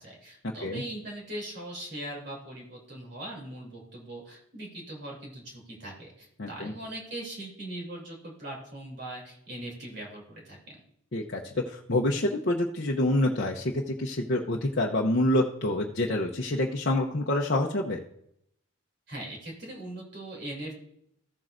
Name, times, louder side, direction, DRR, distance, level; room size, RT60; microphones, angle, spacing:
voice 1, 0.0-10.8 19.1-20.9, right 1 dB, 55° right, -2 dB, 3.1 m, -40 dB
voice 2, 6.4-6.7 11.1-18.0, left 1 dB, 50° left, -2 dB, 0.8 m, -27 dB
14.5 x 7.5 x 2.6 m, 0.71 s
head